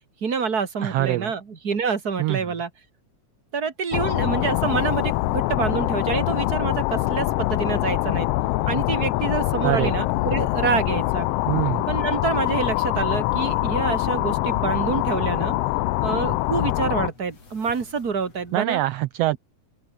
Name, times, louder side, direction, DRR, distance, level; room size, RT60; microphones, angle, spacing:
voice 1, 0.2-2.7 3.5-8.3 8.7-11.3 11.9-15.5 16.0-18.8, right 5 dB, 35° right, 2.5 m, -27 dB
voice 2, 0.8-1.3 2.2-2.4 9.6-10.1 11.5-11.9 18.5-19.4, right 16 dB, 85° right, 1.4 m, -24 dB
sound 1, 3.9-17.1, left 18 dB, 85° left, 1.3 m, -24 dB
sound 2, 4.1-18.5, left 4 dB, 55° left, 5.7 m, -47 dB
open air
omnidirectional pair, 3.4 m